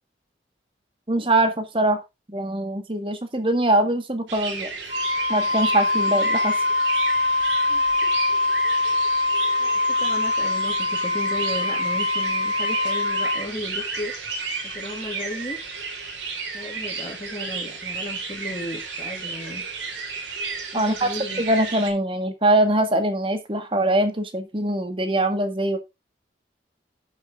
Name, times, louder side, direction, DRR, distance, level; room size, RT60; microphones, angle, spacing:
voice 1, 1.1-2.0 2.3-4.7 5.3-6.6 20.7-21.1 21.4-25.8, right 1 dB, 30° right, 8 dB, 1.7 m, -22 dB
sound 1, 4.3-21.9, right 4 dB, 80° right, 3.6 m, -33 dB
Wind instrument woodwind instrument, 4.9-13.5, left 2 dB, 80° left, 2.3 m, -23 dB
voice 2, 7.7-8.1 9.6-14.1 14.6-15.6 16.5-19.7 20.7-21.4, left 1 dB, 25° left, -3 dB, 2.6 m, -35 dB
10.5 x 7.5 x 3.7 m, 0.23 s
head